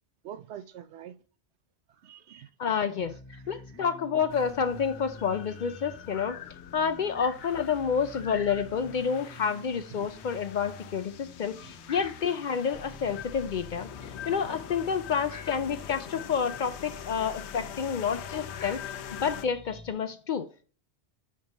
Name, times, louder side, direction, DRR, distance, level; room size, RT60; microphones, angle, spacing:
voice 1, 0.2-1.1 1.9-2.5 3.3-3.8 9.9-10.1 11.6-11.7, right 10 dB, 80° right, 0.9 m, -45 dB
voice 2, 2.6-13.9 14.3-18.8 19.1-20.5, left 6 dB, 55° left, 0.6 m, -29 dB
sound 1, 3.0-19.9, left 2 dB, 15° left, 1.0 m, -48 dB
sound 2, 4.3-19.5, left 10 dB, 80° left, 0.9 m, -44 dB
5.3 x 5.2 x 4.0 m
omnidirectional pair, 1.1 m